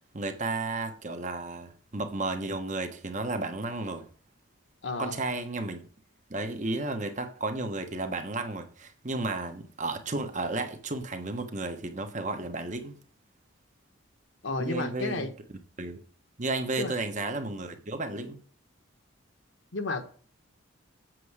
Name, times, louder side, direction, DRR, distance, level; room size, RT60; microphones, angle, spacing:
voice 1, 0.1-4.1 5.0-5.8 6.3-13.0 14.6-15.3 15.8-16.0 16.4-18.4, right 2 dB, 35° right, 1.2 m, -33 dB
voice 2, 4.8-5.2 14.4-15.3 16.8-16.9 19.7-20.1, left 2 dB, 65° left, 1.4 m, -32 dB
7.8 x 7.6 x 4.9 m
head